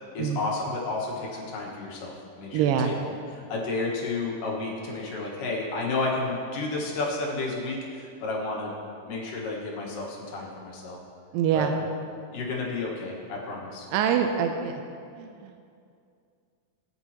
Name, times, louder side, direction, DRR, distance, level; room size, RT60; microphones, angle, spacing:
voice 1, 0.1-2.9 3.3-8.7 9.1-11.0 11.5-11.7 12.3-13.9, left 3 dB, 70° left, -2 dB, 3.0 m, -31 dB
voice 2, 2.5-2.9 11.3-11.7 13.9-14.8 15.2-15.7, right 8 dB, 85° right, 5 dB, 2.3 m, -25 dB
18.0 x 9.8 x 2.9 m, 2.4 s
omnidirectional pair, 4.0 m